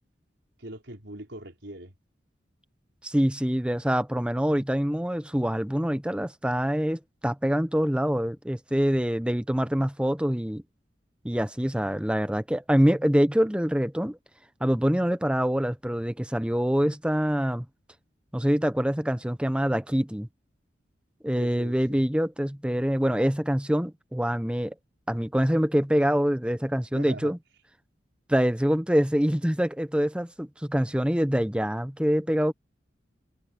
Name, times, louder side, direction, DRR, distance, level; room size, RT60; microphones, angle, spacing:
voice 1, 0.6-2.0 21.4-22.0 26.9-27.4, right 1 dB, 75° right, 4.7 m, -41 dB
voice 2, 3.0-10.6 11.2-14.2 14.6-17.6 18.3-20.3 21.2-24.7 25.1-27.4 28.3-32.5, equal, 5° right, 0.8 m, -25 dB
head